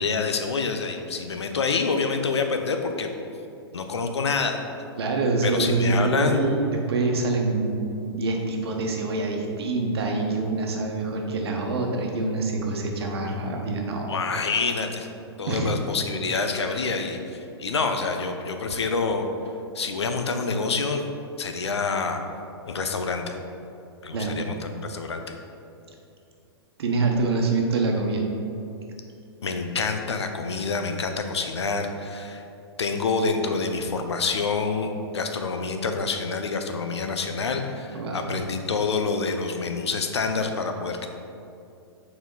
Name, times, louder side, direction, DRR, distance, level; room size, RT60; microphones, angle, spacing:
voice 1, 0.0-3.1 3.7-4.6 5.4-6.4 14.1-15.1 15.4-19.3 19.7-21.0 21.4-22.2 22.7-23.4 24.0-25.3 29.4-32.4 32.8-41.1, left 4 dB, 80° left, 5 dB, 0.7 m, -27 dB
voice 2, 5.0-7.8 8.1-14.1 15.5-15.7 24.1-24.4 26.8-28.2 37.9-38.3, right 3 dB, 65° right, 1 dB, 1.1 m, -25 dB
6.9 x 4.3 x 3.8 m, 2.6 s
hypercardioid pair, 115°, 14 cm